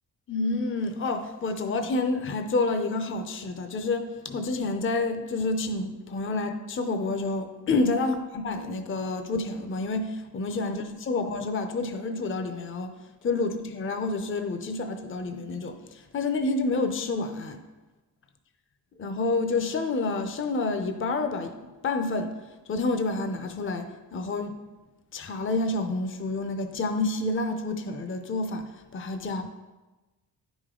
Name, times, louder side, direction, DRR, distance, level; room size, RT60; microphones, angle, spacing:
voice 1, 0.3-13.0 13.2-17.6 19.0-21.6 21.8-22.3 22.7-24.6 25.1-29.6, left 3 dB, 30° left, 7 dB, 0.6 m, -29 dB
10.0 x 5.1 x 3.7 m, 1.2 s
wide cardioid pair, 115°, 40 cm